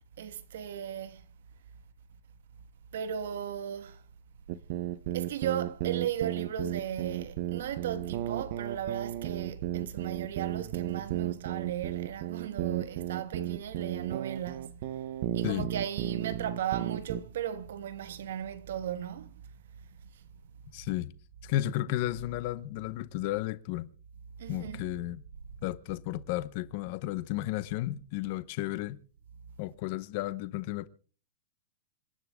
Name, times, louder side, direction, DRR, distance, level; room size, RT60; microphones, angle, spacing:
voice 1, 0.2-1.2 2.9-4.0 5.1-14.8 15.3-19.5 24.4-24.8, right 9 dB, 65° right, 1.3 m, -36 dB
sound 1, 4.5-17.2, right 13 dB, 40° right, 0.7 m, -34 dB
voice 2, 20.7-21.1 21.4-23.9 24.5-25.2 25.6-29.0 29.6-30.9, left 15 dB, 35° left, 0.8 m, -33 dB
27.0 x 11.0 x 3.5 m
supercardioid pair, 175°, 0 cm